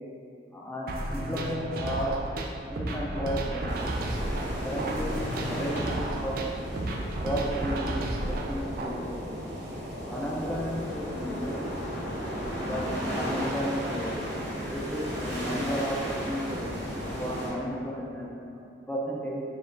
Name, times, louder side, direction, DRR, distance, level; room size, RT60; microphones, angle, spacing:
voice 1, 0.5-2.1 2.7-3.7 4.6-6.4 7.2-9.1 10.1-11.7 12.6-14.1 14.7-16.0 16.3-16.7 17.1-19.4, equal, 10° left, -4 dB, 0.4 m, -33 dB
sound 1, 0.9-8.9, right 1 dB, 50° right, 0.4 m, -33 dB
sound 2, 3.7-17.5, equal, 80° right, 1.1 m, -34 dB
5.2 x 2.4 x 3.8 m, 2.4 s
head